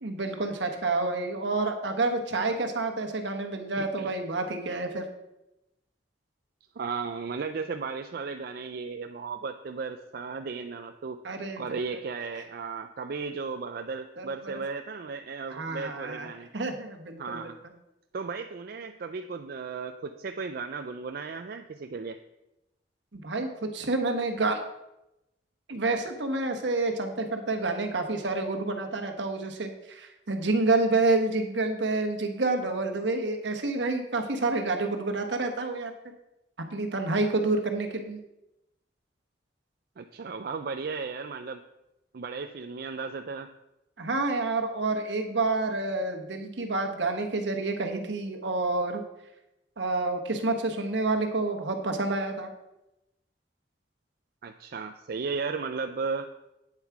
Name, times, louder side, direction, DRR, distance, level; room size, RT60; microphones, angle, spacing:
voice 1, 0.0-5.0 11.2-11.6 14.2-14.6 15.5-16.3 16.5-17.5 23.1-24.6 25.7-35.9 36.7-38.2 44.0-49.0 49.8-52.5, right 3 dB, 80° right, 5 dB, 1.2 m, -28 dB
voice 2, 3.8-4.1 6.8-11.2 11.6-16.5 17.2-17.6 18.1-22.2 40.0-41.6 42.1-43.5 54.4-56.3, right 4 dB, 55° right, 6 dB, 0.4 m, -35 dB
9.0 x 7.2 x 4.7 m, 0.91 s
head